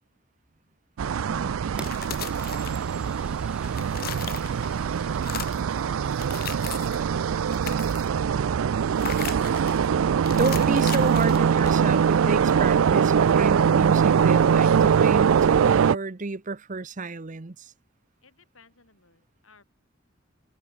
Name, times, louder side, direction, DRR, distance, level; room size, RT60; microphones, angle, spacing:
sound 1, 1.0-16.0, right 7 dB, 85° right, 0.4 m, -22 dB
sound 2, 1.7-3.2 3.5-4.8 5.1-5.7 6.1-7.1 7.4-8.2 9.0-9.8 10.3-12.0, left 10 dB, 45° left, 0.9 m, -38 dB
Fire, 1.8-7.7, right 1 dB, 5° right, 6.7 m, -49 dB
voice 1, 10.2-17.7, right 3 dB, 40° right, 0.8 m, -30 dB
voice 2, 18.2-19.6, left 4 dB, 85° left, 7.3 m, -58 dB
head